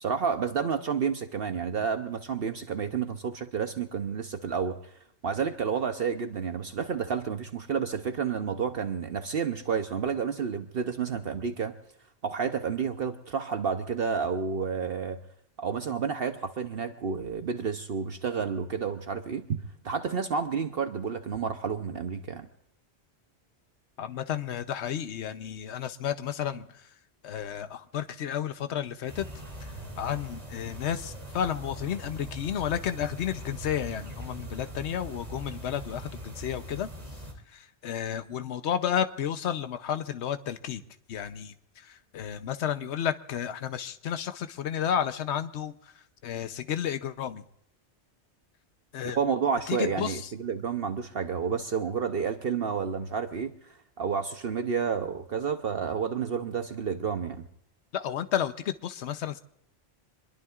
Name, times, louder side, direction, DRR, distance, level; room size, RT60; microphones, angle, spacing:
voice 1, 0.0-4.9 5.2-11.8 12.2-15.2 15.6-22.5 49.1-57.4, right 6 dB, 60° right, 7 dB, 0.9 m, -30 dB
voice 2, 24.0-26.9 27.2-29.3 29.6-36.9 37.5-40.8 41.1-47.4 48.9-49.2 49.7-50.3 57.9-59.4, left 9 dB, 80° left, 10 dB, 1.1 m, -32 dB
sound 1, 29.1-37.3, equal, 35° right, 2.8 m, -41 dB
26.5 x 21.5 x 2.4 m, 0.72 s
omnidirectional pair, 1.2 m